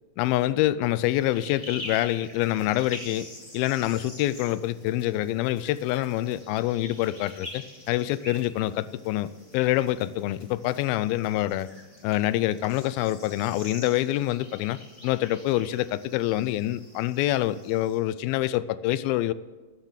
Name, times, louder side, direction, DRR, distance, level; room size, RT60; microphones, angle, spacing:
voice 1, 0.2-3.3 3.5-9.3 9.5-11.7 12.0-19.3, left 15 dB, 90° left, 17 dB, 2.4 m, -26 dB
sound 1, 1.0-18.0, left 1 dB, 15° left, 2.3 m, -46 dB
sound 2, 1.6-11.8, left 1 dB, 35° left, 6.8 m, -61 dB
13.5 x 9.7 x 7.4 m, 1.2 s
omnidirectional pair, 4.2 m